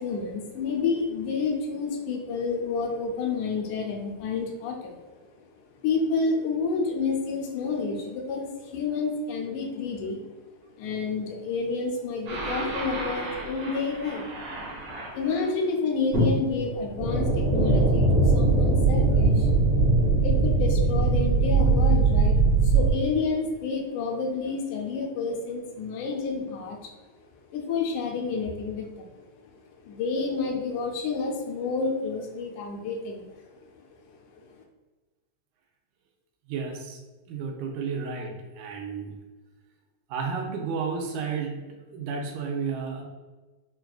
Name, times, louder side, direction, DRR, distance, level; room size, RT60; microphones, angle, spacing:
voice 1, 0.0-5.0 5.8-10.2 10.7-14.3 15.1-19.5 19.8-19.9 20.2-22.4 22.6-26.9 27.5-29.1 29.8-33.3 33.8-33.9 34.3-34.4, left 4 dB, 85° left, 1 dB, 2.0 m, -29 dB
sound 1, 12.3-15.4 16.1-22.9, right 3 dB, 60° right, 1.9 m, -22 dB
voice 2, 36.5-37.0 37.3-39.1 40.1-43.0, right 5 dB, 80° right, 1 dB, 1.9 m, -32 dB
5.9 x 2.3 x 2.3 m, 1.2 s
omnidirectional pair, 3.5 m